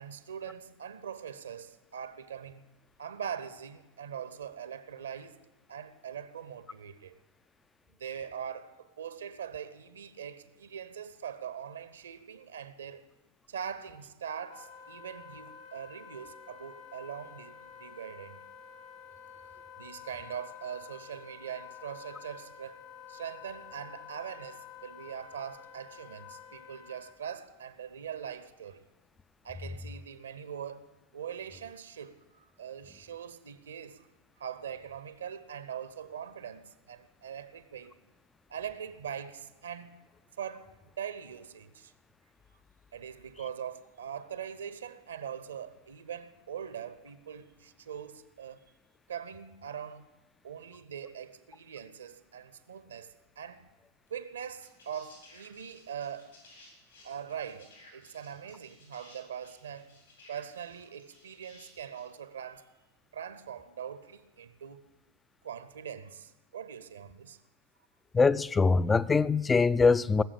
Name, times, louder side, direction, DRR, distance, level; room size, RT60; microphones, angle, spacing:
voice 1, 0.0-2.6 3.0-5.4 5.7-7.2 8.0-13.0 13.5-18.4 19.8-22.8 23.1-28.9 29.4-30.9 31.1-34.1 34.4-37.9 38.5-40.0 40.4-40.7 41.0-41.9 42.9-48.6 49.1-50.1 50.4-53.7 54.1-56.3 57.0-60.0 60.3-62.7 63.1-64.8 65.4-67.4, right 8 dB, 70° right, 0.8 m, -42 dB
Wind instrument woodwind instrument, 14.5-27.2, left 8 dB, 50° left, 1.6 m, -50 dB
sound 1, 54.1-54.2 54.6-62.1 63.3-63.4, left 2 dB, 75° left, 6.9 m, -57 dB
voice 2, 68.1-70.2, left 4 dB, 15° left, 0.4 m, -23 dB
19.0 x 7.4 x 8.6 m
figure-of-eight pair, 90°, 0 cm